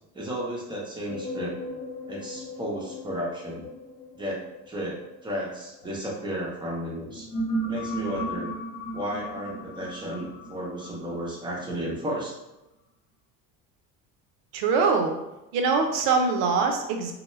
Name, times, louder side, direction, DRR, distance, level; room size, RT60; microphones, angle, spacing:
voice 1, 0.1-1.6 2.1-3.7 4.1-7.3 7.7-8.5 8.9-12.4, equal, 10° right, -4 dB, 0.8 m, -33 dB
sound 1, 1.1-6.3 6.9-11.9, right 1 dB, 75° left, 0.9 m, -36 dB
voice 2, 14.5-15.1 15.5-17.1, right 4 dB, 65° right, 4 dB, 0.6 m, -23 dB
2.2 x 2.1 x 3.1 m, 0.96 s
hypercardioid pair, 70°, 49 cm